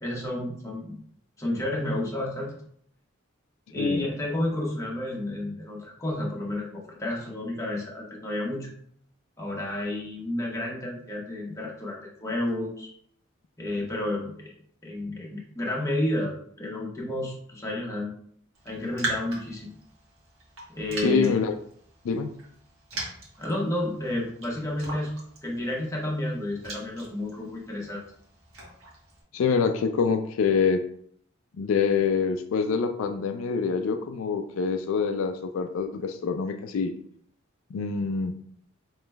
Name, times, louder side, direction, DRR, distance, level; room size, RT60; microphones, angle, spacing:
voice 1, 0.0-1.0 1.4-2.6 3.7-8.7 9.4-12.9 13.6-14.5 14.8-18.1 18.6-19.7 20.7-21.3 23.4-25.1 25.4-28.0, left 1 dB, 15° left, -3 dB, 1.0 m, -31 dB
voice 2, 3.8-4.1 21.0-21.6 22.0-22.3 29.3-30.8 31.6-36.9 37.7-38.3, left 5 dB, 75° left, 7 dB, 0.3 m, -25 dB
Raindrop, 18.5-29.2, right 2 dB, 80° right, 1.3 m, -40 dB
4.9 x 3.1 x 2.2 m, 0.63 s
head